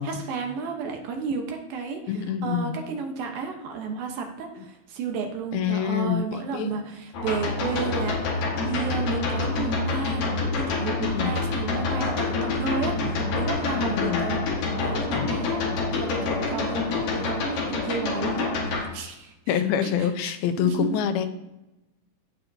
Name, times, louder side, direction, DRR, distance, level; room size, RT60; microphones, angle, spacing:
voice 1, 0.0-10.3 10.6-15.6 15.9-21.0, right 5 dB, 75° right, 3 dB, 2.9 m, -33 dB
voice 2, 2.1-2.8 5.5-6.7 11.0-11.3 13.7-14.2 15.1-15.4 19.5-21.3, left 8 dB, 85° left, 10 dB, 2.5 m, -26 dB
sound 1, 7.1-18.8, left 3 dB, 65° left, 3.2 m, -27 dB
16.0 x 5.4 x 2.8 m, 0.96 s
omnidirectional pair, 4.3 m